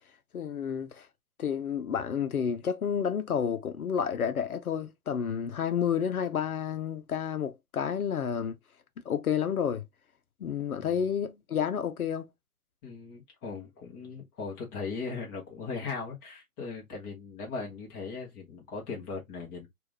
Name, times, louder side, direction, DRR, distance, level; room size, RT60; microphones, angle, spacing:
voice 1, 0.3-1.1 1.4-8.6 9.0-9.8 10.4-12.3, left 8 dB, 70° left, 0.7 m, -30 dB
voice 2, 12.8-19.7, left 4 dB, 15° left, 0.9 m, -38 dB
3.6 x 2.5 x 3.2 m
figure-of-eight pair, 140°, 44 cm